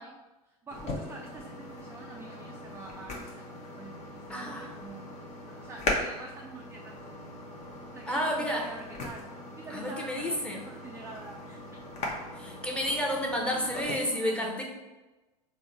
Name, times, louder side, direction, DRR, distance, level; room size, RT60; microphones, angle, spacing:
voice 1, 0.0-5.1 5.5-7.0 7.9-9.3 9.6-11.6 13.5-14.5, right 3 dB, 10° right, 0 dB, 0.3 m, -47 dB
sound 1, 0.7-13.9, left 2 dB, 35° left, 0.8 m, -39 dB
voice 2, 4.3-4.7 8.1-8.7 9.7-10.6 12.3-14.6, equal, 5° left, -1 dB, 0.8 m, -31 dB
3.7 x 2.1 x 4.4 m, 1.1 s
hypercardioid pair, 85°, 20 cm